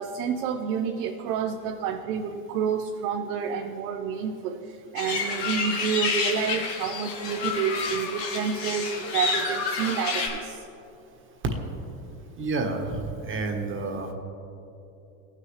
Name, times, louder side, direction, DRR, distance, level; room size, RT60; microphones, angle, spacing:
voice 1, 0.0-10.7, right 6 dB, 75° right, 4 dB, 0.8 m, -29 dB
sound 1, 5.0-10.3, left 4 dB, 85° left, 2.0 m, -29 dB
voice 2, 12.4-14.1, right 3 dB, 25° right, 3 dB, 1.3 m, -30 dB
16.5 x 6.6 x 3.2 m, 2.8 s
supercardioid pair, 115°, 46 cm